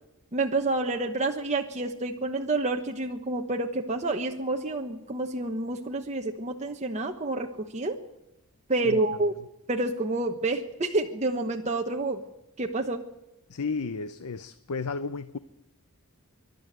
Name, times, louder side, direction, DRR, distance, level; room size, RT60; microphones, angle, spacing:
voice 1, 0.3-8.0 8.7-9.3 9.7-12.2 12.6-13.0, right 2 dB, 30° right, 2 dB, 1.1 m, -28 dB
voice 2, 13.5-15.4, left 4 dB, 80° left, 13 dB, 0.7 m, -33 dB
25.0 x 12.0 x 9.3 m, 0.92 s
head